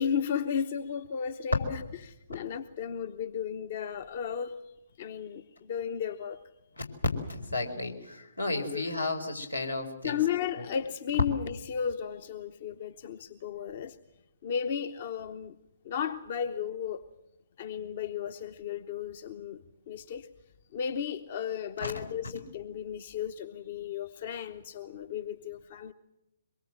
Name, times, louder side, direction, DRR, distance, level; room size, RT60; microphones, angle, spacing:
voice 1, 0.0-6.4 8.7-8.8 10.0-14.0 14.4-15.6 15.8-17.0 17.6-20.3 20.7-25.9, left 8 dB, 40° left, 11 dB, 0.9 m, -34 dB
voice 2, 7.3-10.2 10.6-10.7 21.8-21.9, left 2 dB, 80° left, 3 dB, 4.4 m, -33 dB
23.5 x 22.0 x 7.8 m, 0.92 s
figure-of-eight pair, 125°, 0 cm